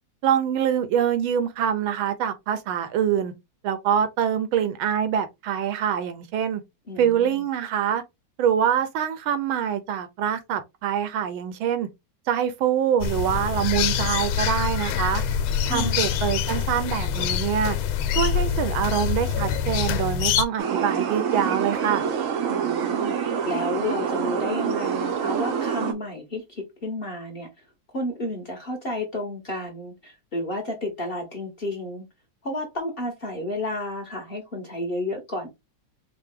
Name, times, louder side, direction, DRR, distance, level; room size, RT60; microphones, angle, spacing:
voice 1, 0.2-3.3 3.6-6.6 7.0-8.0 8.4-11.9 12.3-15.2 15.7-17.8 18.1-22.0, right 9 dB, 90° right, 1.5 m, -25 dB
voice 2, 6.9-7.5 15.6-16.1 22.5-27.5 27.9-32.1 32.4-35.5, left 1 dB, 40° left, 1.0 m, -31 dB
sound 1, 13.0-20.5, left 8 dB, 85° left, 1.4 m, -25 dB
sound 2, 20.6-25.9, right 7 dB, 70° right, 0.7 m, -26 dB
4.7 x 2.2 x 3.5 m
omnidirectional pair, 2.2 m